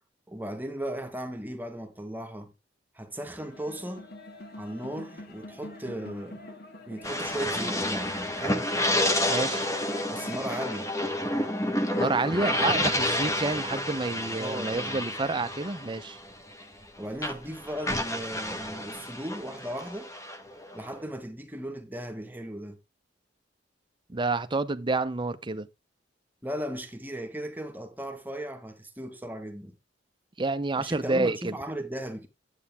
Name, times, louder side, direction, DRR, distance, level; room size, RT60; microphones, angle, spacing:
voice 1, 0.3-2.5 2.9-4.1 4.6-6.4 6.9-8.7 10.1-11.0 14.4-15.0 17.0-20.1 20.7-22.8 26.4-29.7 30.8-32.3, right 1 dB, 10° right, 1.3 m, -36 dB
sound 1, 3.2-13.1, left 2 dB, 60° left, 2.0 m, -45 dB
sound 2, 7.0-16.9 17.2-21.0, left 1 dB, 15° left, 1.3 m, -30 dB
voice 2, 9.3-9.6 11.9-16.2 24.1-25.7 30.4-31.5, right 3 dB, 25° right, 0.7 m, -29 dB
10.5 x 8.4 x 3.5 m
head